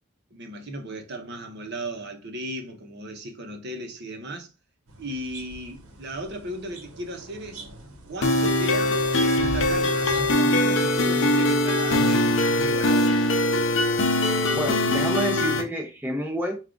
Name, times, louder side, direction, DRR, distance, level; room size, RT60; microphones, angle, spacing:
voice 1, 0.3-4.5 5.0-7.6 8.1-13.2, right 1 dB, 50° right, 0.7 m, -36 dB
sound 1, 4.9-10.3, equal, 80° right, 0.9 m, -42 dB
sound 2, 8.2-15.6, left 1 dB, 55° left, 0.6 m, -22 dB
voice 2, 14.5-16.6, right 1 dB, 10° right, 0.6 m, -29 dB
4.6 x 2.3 x 3.7 m
head